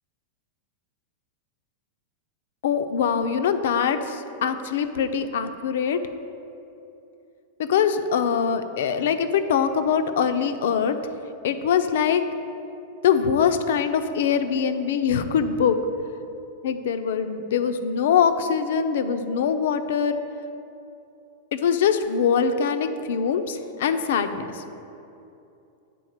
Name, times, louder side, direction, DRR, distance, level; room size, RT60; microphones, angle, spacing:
voice 1, 2.6-6.0 7.6-11.0 11.4-12.2 13.0-15.8 16.6-20.2 21.5-24.6, left 7 dB, 75° left, 9 dB, 0.5 m, -23 dB
8.5 x 3.7 x 6.5 m, 2.8 s
supercardioid pair, 150°, 0 cm